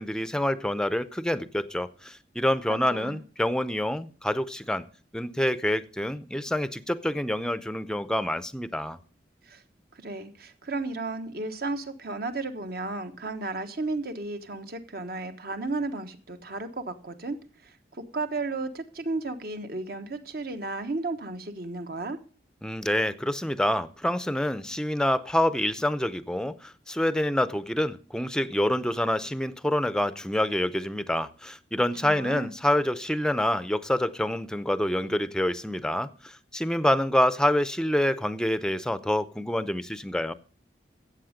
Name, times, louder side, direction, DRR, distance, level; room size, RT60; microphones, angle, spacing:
voice 1, 0.0-4.8 5.1-9.0 22.6-40.3, left 1 dB, 5° left, 0.6 m, -27 dB
voice 2, 2.7-3.2 9.5-9.6 9.9-17.4 17.6-22.2 32.0-32.5, right 3 dB, 60° right, 1.3 m, -34 dB
14.0 x 8.2 x 5.1 m
head